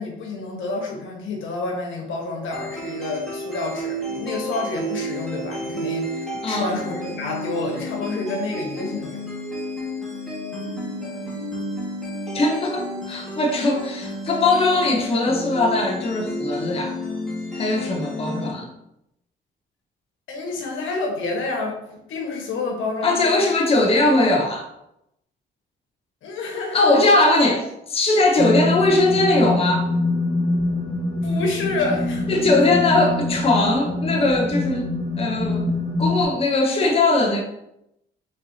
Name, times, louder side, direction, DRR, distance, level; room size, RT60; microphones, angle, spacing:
voice 1, 0.0-9.2 20.3-23.5 26.2-26.9 31.2-32.8, left 3 dB, 75° left, 0 dB, 1.3 m, -29 dB
sound 1, 2.5-18.5, equal, ahead, 1.6 m, -31 dB
voice 2, 12.3-16.9 17.5-18.7 23.0-24.6 26.7-29.9 32.3-34.9 35.2-37.4, left 2 dB, 30° left, 1 dB, 0.7 m, -20 dB
sound 2, 28.4-36.2, left 2 dB, 80° right, 1.5 m, -24 dB
4.4 x 4.1 x 2.7 m, 0.83 s
cardioid pair, 90°, 20 cm